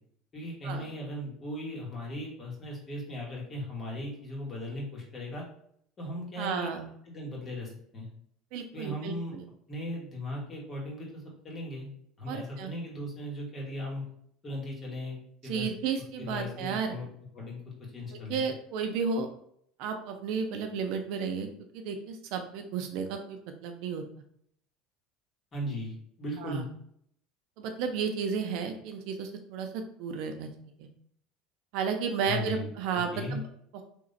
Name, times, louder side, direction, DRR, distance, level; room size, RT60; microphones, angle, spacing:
voice 1, 0.3-5.5 6.0-6.7 7.1-8.1 8.7-9.3 9.7-11.9 12.2-14.0 14.4-15.2 15.4-15.7 16.2-17.1 17.3-18.4 25.5-26.6 32.3-33.4, left 1 dB, 30° left, -3 dB, 1.8 m, -37 dB
voice 2, 6.4-6.9 8.5-9.5 12.3-12.7 15.4-17.0 18.1-19.3 19.8-21.5 21.7-24.0 26.4-26.7 27.6-30.5 30.8-30.9 31.7-33.4 33.7-33.8, right 6 dB, 70° right, 5 dB, 0.7 m, -33 dB
3.7 x 2.9 x 4.2 m, 0.68 s
supercardioid pair, 130°, 0 cm